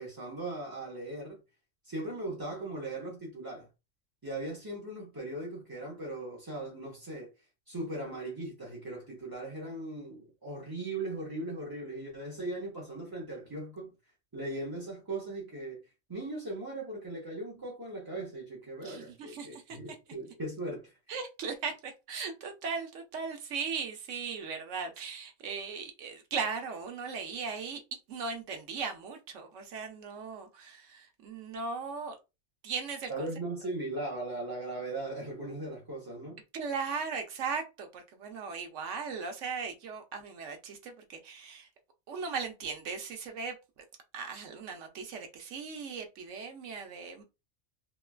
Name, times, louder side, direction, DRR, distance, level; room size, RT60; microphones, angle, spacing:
voice 1, 0.0-1.4 1.8-3.7 4.2-7.3 7.7-13.9 14.3-15.8 16.1-21.0 33.1-36.4, right 2 dB, 30° right, 0.4 m, -38 dB
voice 2, 18.8-19.8 21.1-27.8 28.1-32.2 32.6-33.3 36.5-41.7 42.1-43.8 44.1-47.2, right 5 dB, 70° right, 0.9 m, -38 dB
3.1 x 2.2 x 2.3 m
omnidirectional pair, 1.4 m